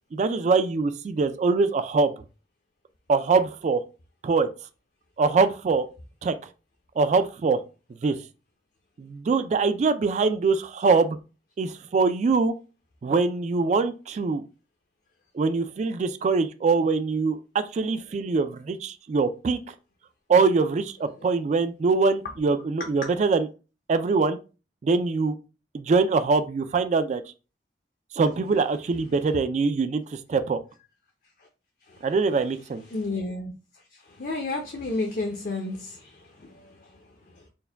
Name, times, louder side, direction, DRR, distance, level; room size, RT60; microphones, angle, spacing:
voice 1, 0.1-2.1 3.1-3.8 4.2-4.5 5.2-5.9 6.2-6.3 7.0-7.6 8.0-8.2 9.0-11.2 11.6-12.5 13.0-14.4 15.3-19.6 20.3-23.5 23.9-24.4 24.8-25.4 25.7-27.2 28.1-30.6 32.0-32.8, right 4 dB, 40° right, 0.3 m, -23 dB
voice 2, 32.9-33.5 33.9-37.5, left 2 dB, 50° left, 0.6 m, -33 dB
4.5 x 2.2 x 3.4 m
head